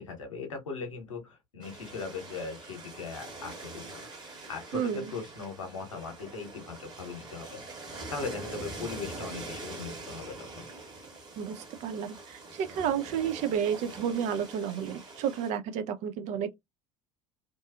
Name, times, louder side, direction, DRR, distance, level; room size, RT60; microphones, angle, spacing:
voice 1, 0.0-10.7, left 5 dB, 75° left, 0.9 m, -39 dB
sound 1, 1.6-15.5, right 3 dB, 25° right, 1.3 m, -44 dB
voice 2, 4.7-5.1 11.4-16.5, right 8 dB, 45° right, 0.4 m, -31 dB
2.6 x 2.4 x 2.3 m
figure-of-eight pair, 70°, 17 cm